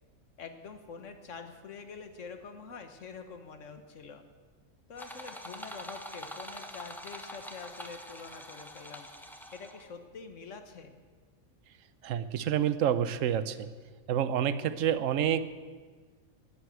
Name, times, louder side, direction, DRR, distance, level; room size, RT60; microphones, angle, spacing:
voice 1, 0.4-4.3 4.9-9.1 9.5-11.0, left 5 dB, 60° left, 7 dB, 1.6 m, -46 dB
sound 1, 5.0-9.9, equal, ahead, 1.1 m, -45 dB
voice 2, 12.0-13.7 14.1-15.4, right 9 dB, 65° right, 13 dB, 1.1 m, -28 dB
20.0 x 8.0 x 7.8 m, 1.5 s
omnidirectional pair, 1.5 m